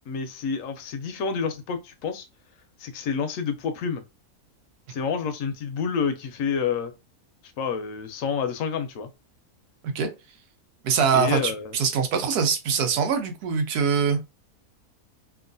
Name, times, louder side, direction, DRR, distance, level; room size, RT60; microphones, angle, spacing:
voice 1, 0.1-2.3 2.8-4.0 4.9-6.9 7.6-9.1 11.1-11.8, left 6 dB, 70° left, 0.9 m, -28 dB
voice 2, 10.8-14.2, right 6 dB, 90° right, 1.2 m, -23 dB
3.0 x 2.4 x 2.5 m
omnidirectional pair, 1.6 m